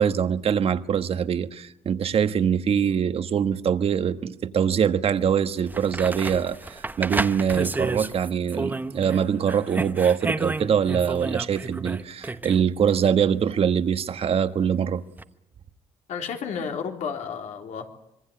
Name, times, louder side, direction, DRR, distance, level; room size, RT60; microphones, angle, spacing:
voice 1, 0.0-15.0, right 7 dB, 50° right, 1.4 m, -23 dB
sound 1, 5.2-5.3 5.7-9.2 9.5-12.6 15.2-15.3, right 2 dB, 15° right, 1.0 m, -31 dB
voice 2, 16.1-17.9, left 6 dB, 75° left, 3.7 m, -32 dB
26.0 x 22.5 x 8.7 m
cardioid pair, 115°, 12 cm